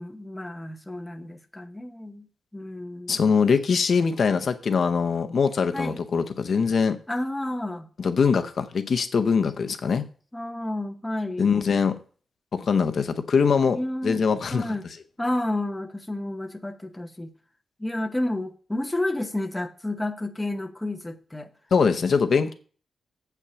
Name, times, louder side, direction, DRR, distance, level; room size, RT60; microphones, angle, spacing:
voice 1, 0.0-2.3 2.5-3.2 5.7-6.0 7.1-7.9 10.3-11.5 13.7-14.2 14.5-14.9 15.2-17.3 17.8-21.5, left 1 dB, 10° left, 0.9 m, -30 dB
voice 2, 3.1-7.0 8.0-10.0 11.4-12.0 12.5-14.6 21.7-22.5, left 5 dB, 50° left, 0.7 m, -22 dB
8.1 x 5.8 x 7.0 m
wide cardioid pair, 165°, 0 cm